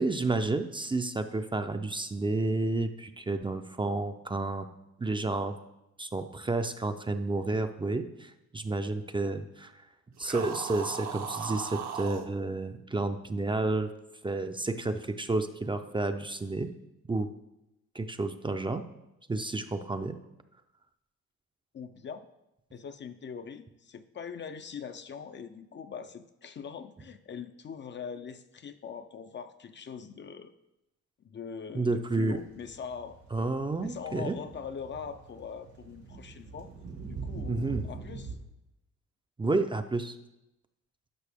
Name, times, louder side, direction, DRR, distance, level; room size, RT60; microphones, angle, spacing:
voice 1, 0.0-4.7 5.0-5.5 6.0-9.7 10.2-13.9 14.2-16.7 17.1-17.3 17.9-18.8 19.3-20.2 31.7-32.4 33.3-34.4 37.5-37.9 39.4-40.2, right 2 dB, 15° right, 7 dB, 0.5 m, -30 dB
sound 1, 10.2-12.3, right 7 dB, 65° right, 0.9 m, -37 dB
voice 2, 21.7-22.3 22.7-30.5 31.2-33.2 33.8-36.7 37.1-38.4, left 6 dB, 40° left, 9 dB, 0.5 m, -42 dB
sound 2, 32.2-38.3, right 4 dB, 90° right, 2.3 m, -43 dB
11.0 x 5.9 x 3.5 m, 0.91 s
cardioid pair, 90°, 30 cm